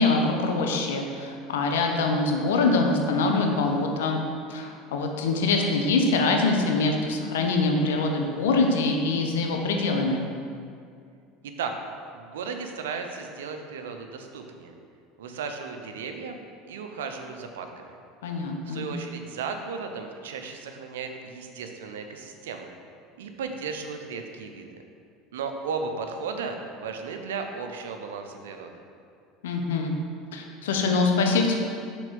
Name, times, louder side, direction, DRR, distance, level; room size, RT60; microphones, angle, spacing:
voice 1, 0.0-4.2 4.5-10.3 18.2-18.9 29.4-29.9 30.3-31.6, left 3 dB, 90° left, 3 dB, 0.7 m, -24 dB
voice 2, 11.4-11.7 12.1-14.7 15.2-16.4 16.7-17.9 18.7-22.7 23.2-24.8 25.3-28.7, right 5 dB, 90° right, 5 dB, 0.6 m, -35 dB
6.1 x 3.9 x 5.2 m, 2.3 s
supercardioid pair, 95°, 0 cm